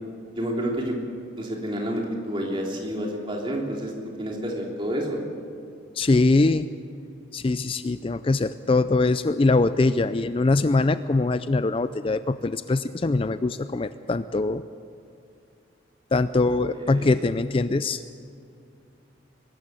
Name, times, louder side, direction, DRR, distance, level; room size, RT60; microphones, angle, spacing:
voice 1, 0.4-1.0 1.4-3.9 4.2-5.2 16.7-17.1, equal, 25° right, -1 dB, 3.3 m, -29 dB
voice 2, 6.0-6.7 7.3-14.6 16.1-18.0, left 3 dB, 30° left, 12 dB, 0.4 m, -22 dB
22.5 x 13.0 x 9.0 m, 2.5 s
head